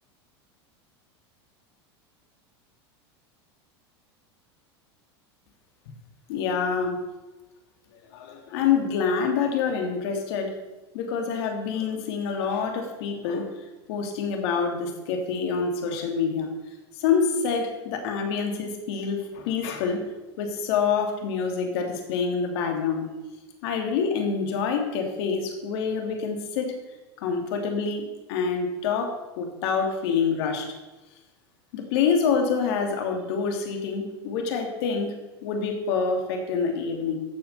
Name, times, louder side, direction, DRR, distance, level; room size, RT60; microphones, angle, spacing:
voice 1, 6.3-7.0 8.1-10.5 10.9-13.5 13.9-16.5 17.0-20.0 20.4-23.1 23.6-26.7 27.2-30.7 31.7-35.1 35.4-37.2, left 5 dB, 65° left, 4 dB, 2.9 m, -26 dB
13.5 x 7.2 x 6.8 m, 1.1 s
hypercardioid pair, 95°, 14 cm